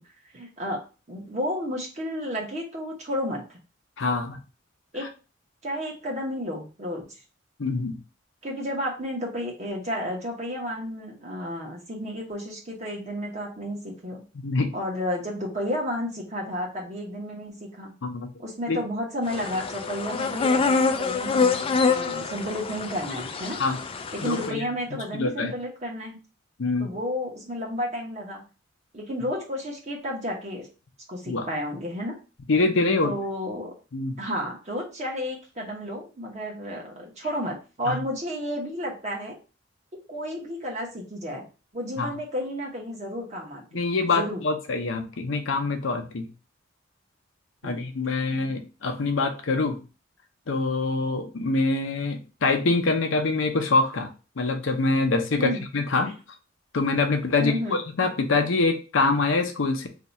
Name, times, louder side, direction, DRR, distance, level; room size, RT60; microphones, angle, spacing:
voice 1, 0.3-0.8 1.1-3.6 4.9-5.1 5.6-7.1 8.4-14.2 14.7-17.9 18.4-23.6 24.1-26.2 26.8-28.4 28.9-30.7 31.1-32.2 33.0-33.7 34.2-39.4 40.1-41.5 41.7-43.6 44.1-44.4 47.6-47.8 48.3-48.6 55.4-55.6 56.0-56.1 57.4-57.8, equal, 35° right, -1 dB, 1.1 m, -32 dB
voice 2, 4.0-4.4 7.6-8.0 14.3-14.7 18.0-18.3 18.7-18.8 23.6-23.8 24.2-24.7 25.1-25.5 26.6-26.9 31.3-31.5 32.5-33.1 33.9-34.2 37.8-38.0 42.0-42.1 43.7-46.3 47.6-49.8 50.5-54.1 54.4-56.1 56.7-59.9, left 3 dB, 70° left, 4 dB, 0.6 m, -25 dB
sound 1, 19.3-24.5, left 4 dB, 30° left, 0.3 m, -26 dB
2.8 x 2.4 x 4.0 m, 0.33 s
head